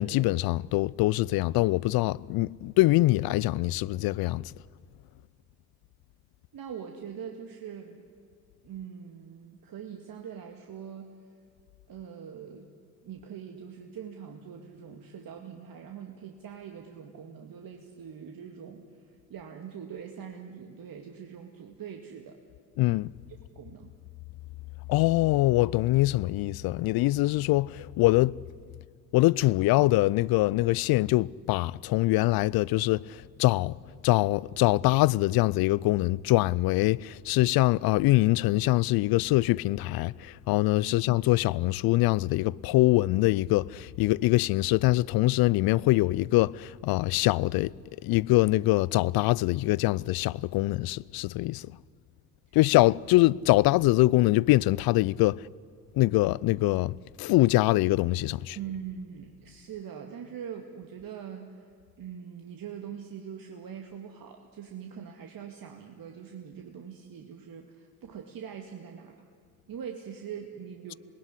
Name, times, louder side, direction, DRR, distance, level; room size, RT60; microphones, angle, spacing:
voice 1, 0.0-4.5 22.8-23.1 24.9-28.4 29.1-33.7 34.0-51.7 52.5-55.4 55.9-58.6, left 18 dB, 55° left, 0.6 m, -24 dB
voice 2, 6.5-8.0 8.6-11.1 11.9-12.7 13.0-22.4 23.5-23.9 40.8-41.0 52.5-52.6 58.6-61.7 62.0-69.2 69.7-70.9, right 8 dB, 50° right, 2.2 m, -42 dB
26.5 x 19.5 x 9.9 m
hypercardioid pair, 50°, 45 cm